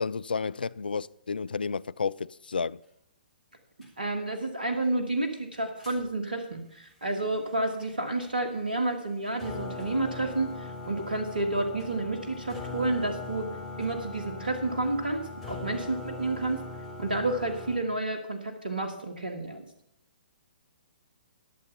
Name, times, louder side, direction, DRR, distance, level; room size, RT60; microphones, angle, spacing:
voice 1, 0.0-2.8, left 5 dB, 70° left, 0.3 m, -31 dB
sound 1, 3.8-3.9 5.8-6.0 7.8-7.9 8.2-8.3 8.8-8.9 9.3-17.8, left 3 dB, 5° left, 3.8 m, -40 dB
voice 2, 4.0-13.5 13.8-16.6 17.0-19.6, right 2 dB, 70° right, 1.4 m, -30 dB
12.5 x 7.0 x 6.7 m
figure-of-eight pair, 120°, 5 cm